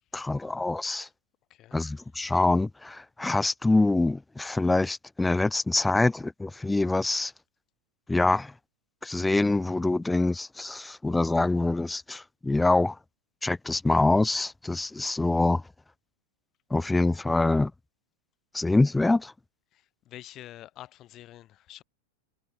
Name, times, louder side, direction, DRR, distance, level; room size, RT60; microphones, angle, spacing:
voice 1, 0.1-1.1 1.7-7.3 8.1-8.5 9.0-13.0 13.4-15.6 16.7-17.7 18.5-19.3, left 2 dB, 5° left, 0.3 m, -25 dB
voice 2, 19.7-21.8, left 14 dB, 35° left, 7.9 m, -47 dB
figure-of-eight pair, 90°, 0 cm